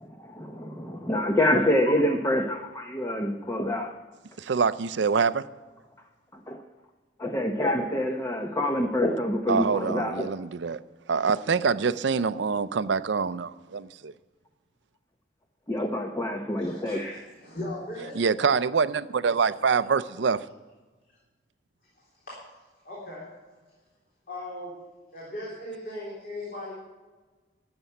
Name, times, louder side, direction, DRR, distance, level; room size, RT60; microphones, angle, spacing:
voice 1, 0.0-3.9 6.3-6.6 7.2-10.3 15.7-17.0, left 1 dB, 15° left, 3 dB, 0.7 m, -26 dB
voice 2, 4.4-5.5 9.5-10.8 11.1-14.1 18.2-20.4, right 5 dB, 75° right, 15 dB, 0.5 m, -25 dB
voice 3, 16.6-18.2 22.0-22.4 22.8-23.3 24.3-24.8 25.1-26.7, left 1 dB, 50° left, -6 dB, 3.8 m, -38 dB
12.5 x 6.9 x 9.1 m, 1.3 s
head